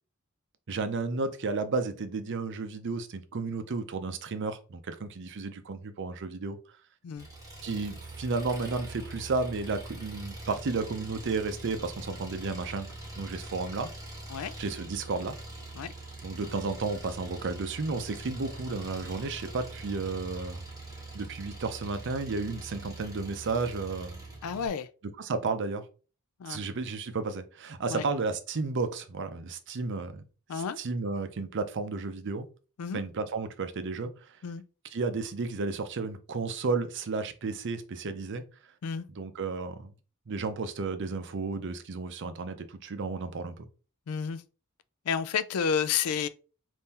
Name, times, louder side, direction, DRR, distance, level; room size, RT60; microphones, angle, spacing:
voice 1, 0.7-6.6 7.6-12.9 13.2-13.9 14.6-15.4 16.2-20.6 21.1-24.2 25.2-25.8 26.5-30.2 30.5-32.5 32.9-34.4 34.9-38.4 39.1-39.9 40.3-43.7, right 4 dB, 55° right, 0.5 m, -33 dB
Engine, 7.2-24.7, right 2 dB, 15° right, 1.4 m, -43 dB
voice 2, 24.4-24.9 26.4-26.7 27.9-28.1 30.5-30.8 32.8-33.0 34.4-34.6 38.8-39.1 44.1-44.4 45.1-46.3, left 7 dB, 80° left, 0.4 m, -31 dB
3.7 x 2.6 x 4.2 m
head